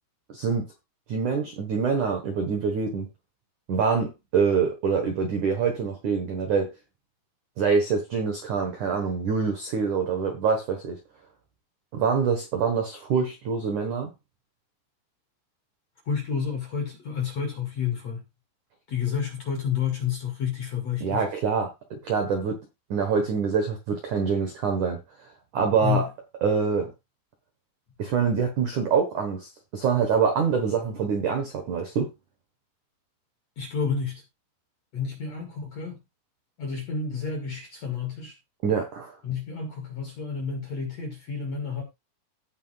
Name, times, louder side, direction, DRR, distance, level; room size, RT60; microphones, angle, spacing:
voice 1, 0.3-0.7 1.1-3.1 3.7-6.7 7.6-11.0 11.9-14.1 21.0-22.6 22.9-25.0 25.5-26.1 26.4-26.9 28.0-32.1 38.6-39.1, right 5 dB, 70° right, 1.8 m, -25 dB
voice 2, 16.1-18.2 18.9-21.2 25.8-26.1 33.6-34.2 34.9-36.0 36.6-38.4 39.2-41.8, left 7 dB, 45° left, 2.5 m, -30 dB
17.0 x 5.8 x 2.5 m
omnidirectional pair, 5.9 m